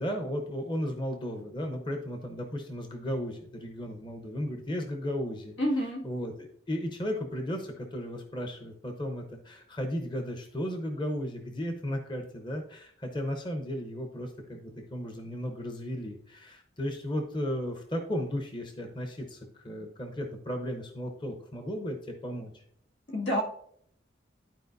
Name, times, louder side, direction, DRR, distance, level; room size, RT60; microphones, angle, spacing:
voice 1, 0.0-5.6 6.0-6.3 6.7-22.6, equal, 25° left, 4 dB, 0.8 m, -35 dB
voice 2, 5.6-6.0 23.1-23.4, equal, 90° left, -1 dB, 2.1 m, -28 dB
12.0 x 4.6 x 2.6 m, 0.65 s
head